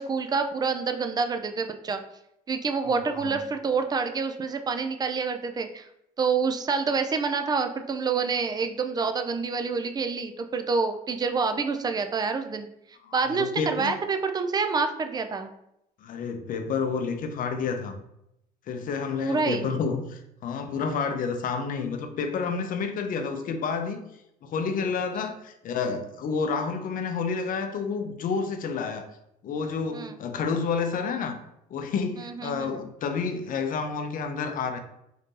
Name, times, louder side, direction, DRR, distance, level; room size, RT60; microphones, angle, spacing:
voice 1, 0.0-2.0 2.5-5.9 6.2-12.7 13.1-15.5 19.2-19.7 29.9-30.2 32.2-32.8, right 5 dB, 25° right, 7 dB, 0.4 m, -27 dB
voice 2, 2.9-3.4 13.0-13.9 16.0-18.0 18.7-24.0 24.4-29.1 29.4-31.4 31.7-34.8, left 5 dB, 55° left, 6 dB, 0.6 m, -30 dB
3.9 x 2.7 x 3.7 m, 0.80 s
cardioid pair, 110°, 17 cm